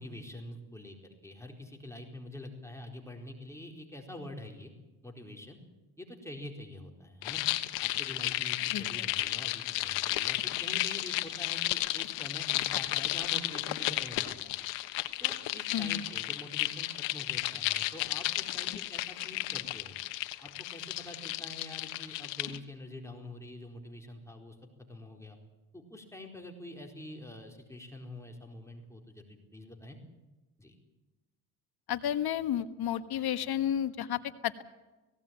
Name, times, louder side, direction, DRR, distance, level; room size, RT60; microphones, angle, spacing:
voice 1, 0.0-4.7 5.0-5.6 6.0-7.4 7.8-14.5 15.2-20.0 20.4-24.6 24.9-25.4 25.7-30.0 30.6-30.8, left 1 dB, 5° left, 1 dB, 4.4 m, -46 dB
sound 1, 7.2-22.6, left 17 dB, 75° left, 1.3 m, -33 dB
voice 2, 8.7-9.1 15.7-16.0 31.9-34.6, left 10 dB, 55° left, 11 dB, 1.5 m, -32 dB
18.0 x 17.0 x 9.0 m, 1.1 s
supercardioid pair, 80°, 43 cm